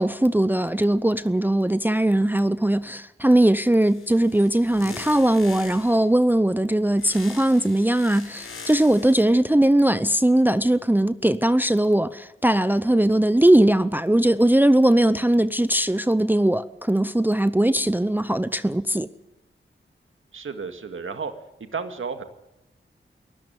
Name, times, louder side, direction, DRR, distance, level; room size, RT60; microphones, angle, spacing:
voice 1, 0.0-19.1, right 1 dB, 10° right, 0.7 m, -20 dB
sound 1, 3.8-6.1 7.0-9.3, left 4 dB, 80° left, 4.7 m, -42 dB
voice 2, 20.3-21.3 21.7-22.2, right 5 dB, 75° right, 2.1 m, -32 dB
22.5 x 14.5 x 9.3 m
wide cardioid pair, 95°, 21 cm